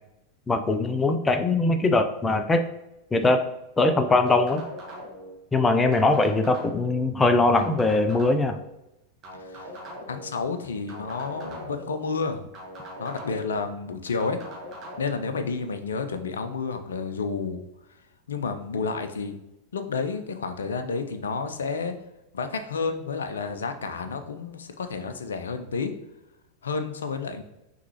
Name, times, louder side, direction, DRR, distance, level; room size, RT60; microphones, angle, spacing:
voice 1, 0.5-2.6 3.1-3.4 3.8-4.6 5.5-8.6, left 2 dB, 15° left, 8 dB, 0.4 m, -21 dB
sound 1, 4.3-5.3 5.9-7.0 7.6-8.6 9.2-10.3 10.9-11.9 12.5-13.6 14.2-15.0, equal, 30° right, 1.3 m, -41 dB
voice 2, 9.3-9.7 10.1-12.4 13.0-14.4 15.0-17.6 18.3-19.4 19.7-21.9 22.3-25.9 26.6-27.4, left 4 dB, 65° left, 8 dB, 0.5 m, -30 dB
5.9 x 3.1 x 2.9 m, 0.91 s
figure-of-eight pair, 90°, 0 cm